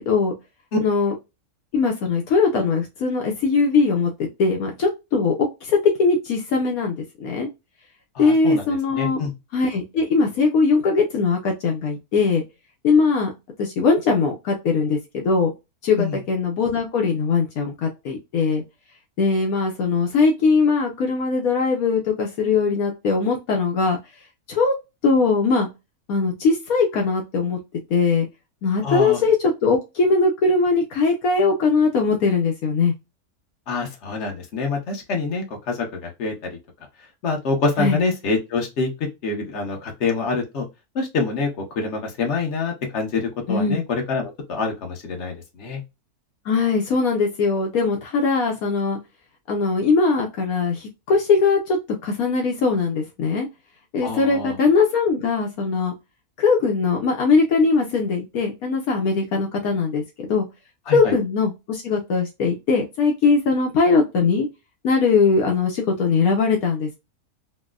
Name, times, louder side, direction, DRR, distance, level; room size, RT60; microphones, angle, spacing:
voice 1, 0.8-1.1 1.7-7.5 8.2-9.2 9.5-12.4 12.8-13.3 13.6-15.5 15.8-18.6 19.2-24.0 24.5-24.7 25.0-25.7 26.1-27.6 27.9-28.3 28.6-32.9 37.8-38.0 43.5-43.8 46.5-49.0 49.5-51.8 52.0-53.5 53.9-55.9 56.4-60.0 60.3-60.5 60.9-64.5 64.8-66.9, left 4 dB, 75° left, 1 dB, 1.2 m, -20 dB
voice 2, 8.1-9.3 16.0-16.2 28.8-29.3 33.7-36.5 37.2-40.7 40.9-45.8 54.0-54.6 60.9-61.1, left 4 dB, 50° left, 2 dB, 1.2 m, -26 dB
4.2 x 2.1 x 2.3 m, 0.24 s
omnidirectional pair, 1.6 m